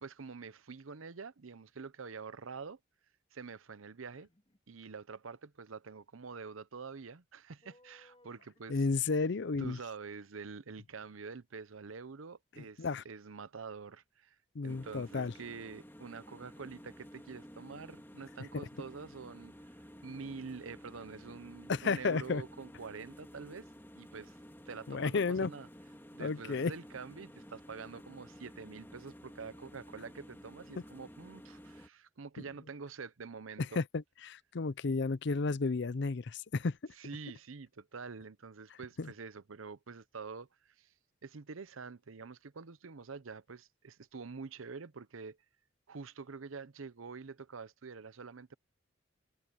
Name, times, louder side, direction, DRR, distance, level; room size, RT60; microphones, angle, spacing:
voice 1, 0.0-2.8 3.3-4.3 4.7-8.8 9.6-14.4 14.6-19.5 20.0-23.7 24.0-24.4 24.7-25.7 26.1-33.8 37.0-40.9 41.2-45.4 45.9-48.6, right 5 dB, 85° right, 0.8 m, -46 dB
sound 1, 4.0-4.6 7.6-9.1, left 1 dB, 30° left, 3.5 m, -65 dB
voice 2, 8.7-9.8 12.6-13.0 14.5-15.3 18.5-18.6 21.7-22.4 24.9-25.5 26.2-26.7 33.8-36.8 39.0-39.1, left 4 dB, 60° left, 0.5 m, -32 dB
sound 2, 14.7-31.9, equal, 10° left, 2.8 m, -53 dB
head